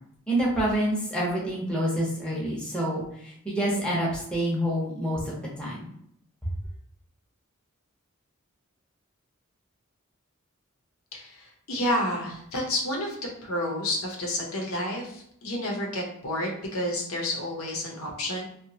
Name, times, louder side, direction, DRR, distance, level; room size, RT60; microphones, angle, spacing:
voice 1, 0.3-3.0 3.4-5.9, right 1 dB, 5° left, -6 dB, 0.7 m, -27 dB
voice 2, 11.1-13.2 13.4-18.4, left 1 dB, 85° left, 0 dB, 0.7 m, -30 dB
2.7 x 2.2 x 2.7 m, 0.71 s
head